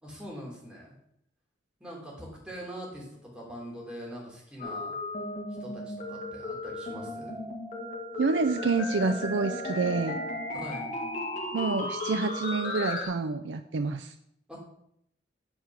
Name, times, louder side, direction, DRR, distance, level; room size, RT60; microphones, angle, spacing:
voice 1, 0.0-0.9 1.8-5.0 5.6-7.4 10.5-10.9 14.5-14.6, equal, 5° right, -4 dB, 3.3 m, -42 dB
sound 1, 4.6-13.1, left 2 dB, 45° left, 1.8 m, -35 dB
voice 2, 8.2-10.2 11.5-14.1, right 4 dB, 85° right, 8 dB, 0.5 m, -28 dB
9.4 x 5.2 x 6.3 m, 0.74 s
head